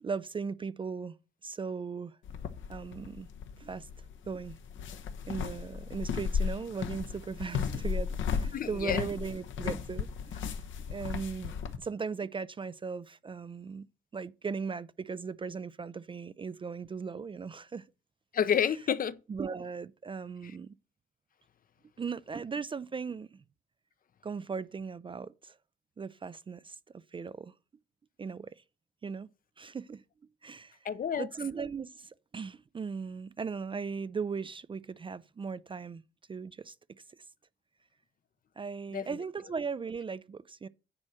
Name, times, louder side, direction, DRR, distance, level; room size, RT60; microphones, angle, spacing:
voice 1, 0.0-1.1 1.4-2.2 2.7-3.3 3.6-3.9 4.3-4.6 5.3-10.6 10.9-17.9 19.3-20.7 22.0-23.4 24.2-25.6 26.0-27.5 28.2-28.6 29.0-29.3 29.6-30.0 30.4-30.8 31.2-36.0 36.3-36.7 38.6-40.7, right 5 dB, 25° right, 0.4 m, -38 dB
sound 1, 2.2-11.8, left 7 dB, 75° left, 1.0 m, -35 dB
voice 2, 8.5-9.1 18.3-19.2 20.4-20.5 30.8-31.3 38.9-39.1, left 8 dB, 45° left, 0.7 m, -29 dB
9.8 x 4.3 x 6.4 m
cardioid pair, 90°, 20 cm